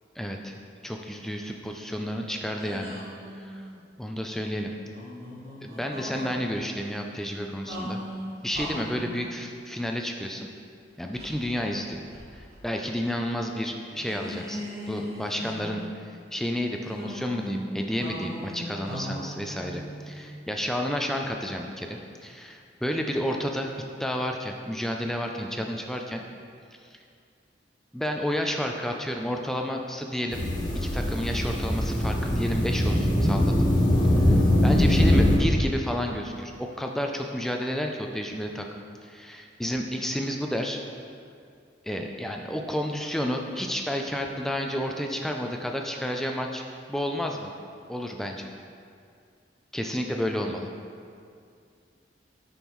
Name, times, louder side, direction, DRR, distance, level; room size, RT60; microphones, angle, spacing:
voice 1, 0.2-0.5 0.8-3.0 3.3-3.6 4.0-4.7 5.6-8.0 8.4-10.5 11.0-12.0 12.3-15.8 16.3-23.7 24.0-26.2 26.9-27.0 27.9-30.4 30.7-33.7 34.3-34.4 34.6-38.7 39.0-40.8 41.8-46.6 46.9-47.5 47.9-48.5 49.7-50.7, equal, ahead, 2 dB, 0.3 m, -31 dB
sound 1, 2.6-3.9 4.8-6.3 7.7-9.3 11.2-12.6 12.9-13.0 14.0-16.1 16.9-20.7, equal, 55° right, 1.2 m, -39 dB
sound 2, 30.3-35.4, left 1 dB, 25° left, 0.9 m, -22 dB
7.1 x 5.4 x 3.0 m, 2.3 s
head